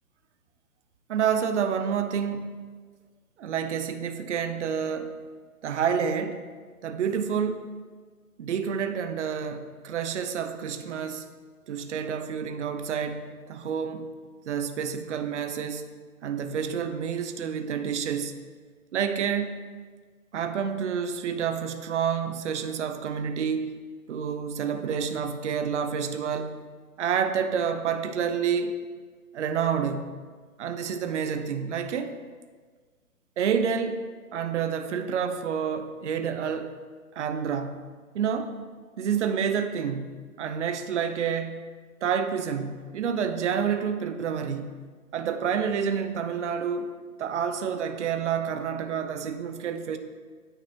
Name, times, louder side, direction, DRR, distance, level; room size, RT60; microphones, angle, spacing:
voice 1, 1.1-2.5 3.4-5.1 5.6-6.4 6.8-7.7 8.4-11.3 11.7-14.1 14.5-15.9 16.2-18.3 18.9-19.6 20.3-23.7 24.1-26.6 27.0-28.8 29.3-30.2 30.6-32.2 33.4-34.0 34.3-36.7 37.2-37.9 38.1-38.6 39.0-41.6 42.0-44.8 45.1-46.9 47.2-50.0, right 7 dB, 50° right, 8 dB, 0.6 m, -29 dB
9.1 x 3.9 x 2.9 m, 1.5 s
figure-of-eight pair, 135°, 44 cm